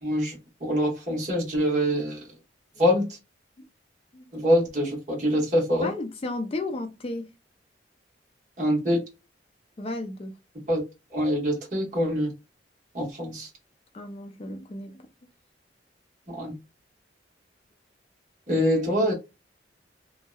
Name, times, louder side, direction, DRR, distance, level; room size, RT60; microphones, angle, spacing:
voice 1, 0.0-2.3 2.8-3.1 4.3-5.9 8.6-9.0 10.7-10.8 11.1-12.3 12.9-13.5 16.3-16.5 18.5-19.1, equal, 40° right, 1.0 m, -24 dB
voice 2, 5.8-7.3 9.8-10.4 13.9-15.0, left 2 dB, 30° left, 0.4 m, -33 dB
2.6 x 2.1 x 2.2 m
head